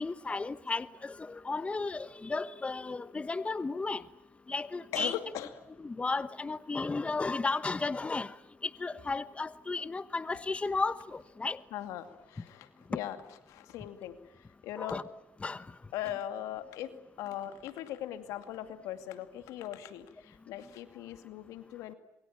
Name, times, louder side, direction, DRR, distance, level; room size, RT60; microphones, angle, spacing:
voice 1, 0.0-4.0 4.5-5.2 5.8-8.3 8.6-11.6 14.8-15.0 15.4-15.6, left 3 dB, 25° left, 16 dB, 1.1 m, -34 dB
voice 2, 4.9-5.5 11.7-13.2 13.5-15.0 15.9-16.9 17.2-21.9, left 12 dB, 80° left, 10 dB, 2.4 m, -40 dB
26.5 x 23.0 x 8.8 m, 0.88 s
supercardioid pair, 75°, 5 cm